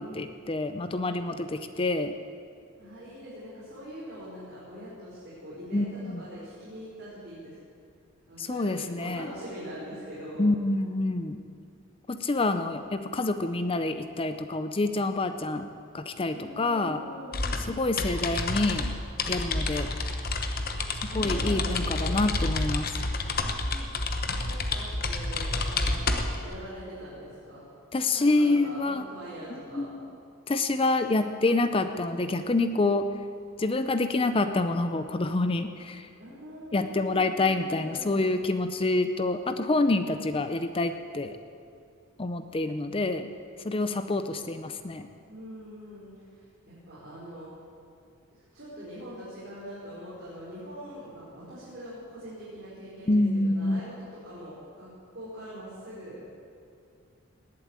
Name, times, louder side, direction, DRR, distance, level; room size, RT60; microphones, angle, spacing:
voice 1, 0.0-2.1 5.7-6.2 8.4-9.3 10.4-11.4 12.1-15.7 15.9-17.0 17.7-18.9 19.3-19.9 21.1-22.9 27.9-29.0 29.7-30.1 30.5-33.1 33.6-36.1 36.7-41.4 42.2-43.3 43.6-45.1 53.1-53.9, left 2 dB, 25° left, 9 dB, 0.5 m, -27 dB
voice 2, 2.8-7.6 8.2-10.5 16.3-17.6 20.8-22.2 23.4-27.6 28.1-29.9 36.2-38.1 45.1-46.1 46.6-47.5 48.3-56.2, equal, 50° right, -10 dB, 4.6 m, -43 dB
sound 1, 17.3-26.5, left 2 dB, 45° left, 1.0 m, -29 dB
19.0 x 7.8 x 8.8 m, 2.4 s
head